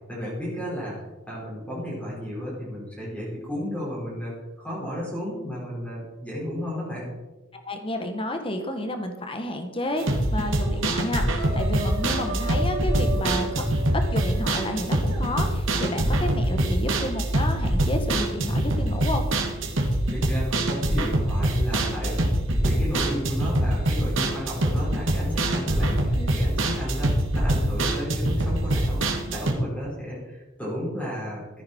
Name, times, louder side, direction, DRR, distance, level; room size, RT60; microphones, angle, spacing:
voice 1, 0.1-7.1 16.5-16.7 20.1-22.2 22.6-31.6, equal, 5° left, -6 dB, 5.2 m, -33 dB
voice 2, 7.5-10.0 10.3-13.6 14.1-19.3 26.1-26.4, left 1 dB, 25° left, 6 dB, 1.5 m, -31 dB
sound 1, 10.0-29.5, right 1 dB, 65° right, 2.1 m, -24 dB
sound 2, 10.0-10.2 10.5-10.9 11.1-15.2, right 1 dB, 90° right, 3.6 m, -36 dB
14.5 x 10.5 x 4.6 m, 1.1 s
head